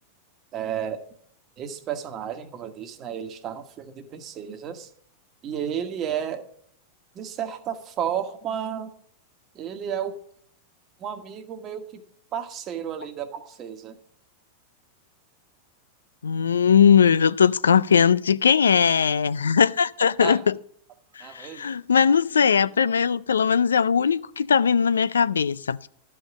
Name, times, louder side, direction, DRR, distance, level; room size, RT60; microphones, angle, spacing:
voice 1, 0.5-1.0 1.6-4.9 5.4-6.5 7.1-8.9 9.5-10.2 11.0-12.0 12.3-14.0 20.2-20.4 21.2-21.7, right 9 dB, 35° right, 1.3 m, -32 dB
voice 2, 16.2-20.5 21.2-25.9, left 7 dB, 85° left, 0.3 m, -20 dB
11.5 x 5.1 x 7.2 m
hypercardioid pair, 100°, 0 cm